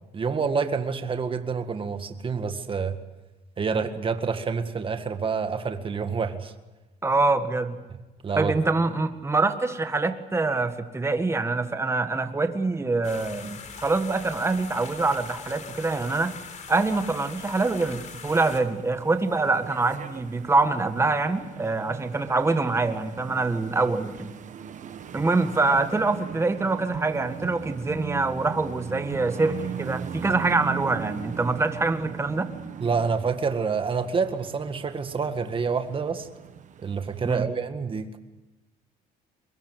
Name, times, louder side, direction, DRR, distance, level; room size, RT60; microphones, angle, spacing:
voice 1, 0.1-3.0 3.6-6.5 8.2-8.5 32.8-36.3 36.8-38.2, right 5 dB, 30° right, 8 dB, 1.9 m, -27 dB
voice 2, 7.0-7.8 8.3-16.3 16.7-24.3 25.1-32.5 37.2-37.5, right 3 dB, 15° right, 8 dB, 1.7 m, -25 dB
main street fountain, 13.0-18.6, left 6 dB, 45° left, 4.0 m, -41 dB
sound 1, 18.3-37.4, right 8 dB, 45° right, 1.4 m, -39 dB
23.0 x 21.5 x 8.0 m, 1.1 s
cardioid pair, 110°, 17 cm